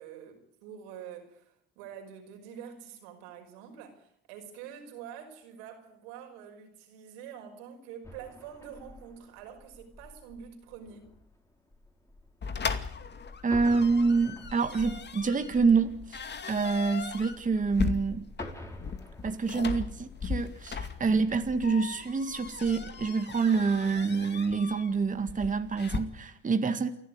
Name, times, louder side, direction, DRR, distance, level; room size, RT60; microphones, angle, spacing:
voice 1, 0.0-11.1, right 8 dB, 90° right, 5.6 m, -46 dB
sound 1, 8.0-23.2, left 1 dB, 10° left, 5.0 m, -49 dB
sound 2, 12.4-26.0, left 5 dB, 35° left, 2.5 m, -38 dB
voice 2, 13.4-18.2 19.2-26.9, right 4 dB, 25° right, 1.9 m, -27 dB
28.5 x 12.0 x 9.6 m
supercardioid pair, 90°, 30 cm